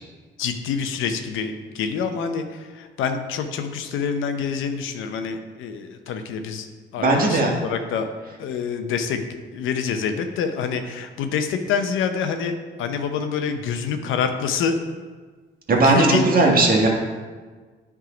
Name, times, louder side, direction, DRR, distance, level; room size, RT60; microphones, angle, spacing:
voice 1, 0.4-2.4 2.8-6.7 6.9-8.1 8.4-9.2 9.5-12.5 12.8-14.8 15.8-16.2, left 6 dB, 85° left, 7 dB, 0.7 m, -26 dB
voice 2, 7.0-7.6 15.7-16.9, right 2 dB, 45° right, -1 dB, 1.6 m, -17 dB
9.3 x 3.7 x 5.0 m, 1.5 s
cardioid pair, 90°, 20 cm